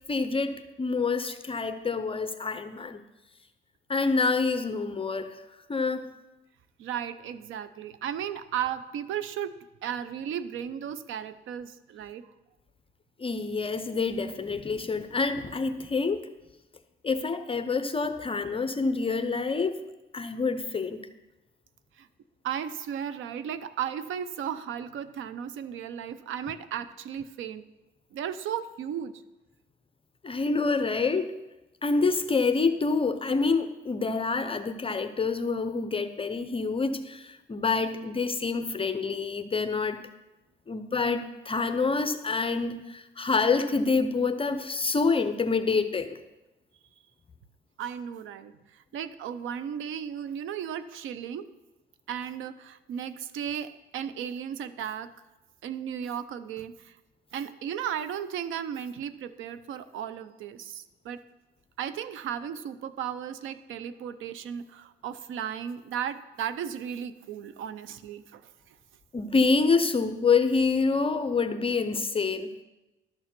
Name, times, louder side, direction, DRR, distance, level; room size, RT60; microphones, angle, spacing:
voice 1, 0.1-3.0 3.9-5.4 5.7-6.1 13.2-16.3 17.0-19.8 20.1-21.1 30.2-31.4 31.8-40.0 40.7-46.2 69.1-72.5, left 4 dB, 25° left, 9 dB, 0.7 m, -27 dB
voice 2, 6.8-9.5 9.8-12.3 22.0-22.1 22.4-27.6 28.1-29.1 47.8-51.5 52.1-55.1 55.6-56.9 57.3-61.2 61.8-68.4, right 9 dB, 80° right, 14 dB, 0.7 m, -35 dB
12.0 x 6.7 x 6.0 m, 1.0 s
cardioid pair, 90°, 20 cm